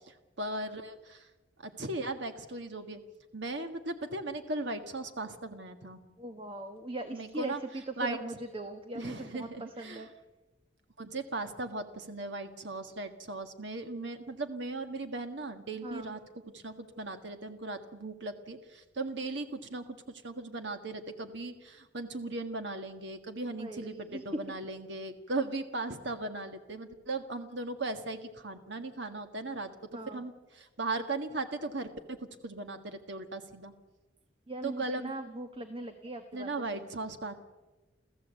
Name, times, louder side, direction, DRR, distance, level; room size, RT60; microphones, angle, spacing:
voice 1, 0.1-1.3 1.6-3.0 3.3-6.0 7.1-7.6 8.0-8.2 8.9-10.0 11.0-16.2 16.5-29.7 30.1-33.7 34.6-35.1 36.3-37.3, right 2 dB, 60° right, 7 dB, 1.6 m, -38 dB
voice 2, 6.2-10.1 15.8-16.1 23.4-24.2 29.9-30.2 34.5-36.8, right 2 dB, 25° right, 6 dB, 1.2 m, -40 dB
29.0 x 14.5 x 8.3 m, 1.2 s
head